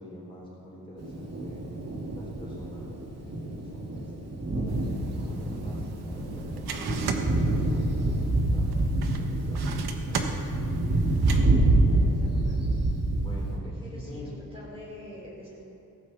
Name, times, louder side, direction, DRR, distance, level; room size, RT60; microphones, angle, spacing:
voice 1, 0.0-1.6 2.1-3.0 3.2-4.1 4.6-7.9 8.5-8.6 9.2-9.6 10.1-10.2 13.2-13.6 13.9-14.3, left 1 dB, 15° left, -5 dB, 4.2 m, -46 dB
Thunder, 1.0-13.6, right 2 dB, 45° right, 2.3 m, -27 dB
sound 1, 4.7-11.4, right 5 dB, 90° right, 1.3 m, -37 dB
voice 2, 11.9-12.6 13.6-15.6, equal, 15° right, -5 dB, 3.8 m, -45 dB
17.0 x 14.5 x 4.2 m, 2.8 s
wide cardioid pair, 140°, 37 cm